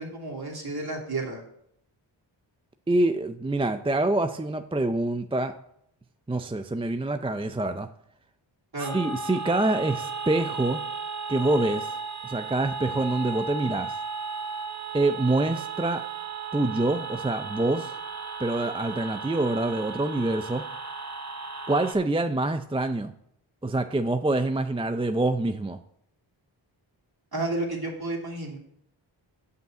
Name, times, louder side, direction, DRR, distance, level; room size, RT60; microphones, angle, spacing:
voice 1, 0.0-1.4 8.7-9.0 27.3-28.6, right 2 dB, 50° right, -2 dB, 2.8 m, -31 dB
voice 2, 2.9-5.5 6.3-7.9 8.8-10.8 11.3-11.9 12.2-14.0 14.9-16.0 16.5-17.9 18.4-20.6 21.7-23.1 23.6-25.8, right 2 dB, 10° right, 8 dB, 0.4 m, -26 dB
sound 1, 8.8-21.9, right 5 dB, 35° right, 1.0 m, -35 dB
7.7 x 5.5 x 7.6 m, 0.73 s
wide cardioid pair, 80°, 48 cm